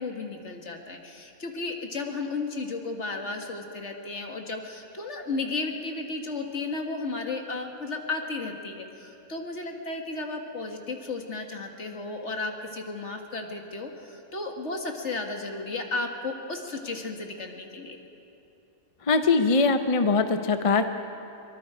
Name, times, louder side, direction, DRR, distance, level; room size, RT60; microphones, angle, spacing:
voice 1, 0.0-18.0, left 3 dB, 55° left, 3 dB, 2.1 m, -34 dB
voice 2, 19.1-20.9, left 4 dB, 35° left, 8 dB, 0.6 m, -22 dB
23.5 x 23.5 x 5.0 m, 2.9 s
omnidirectional pair, 1.5 m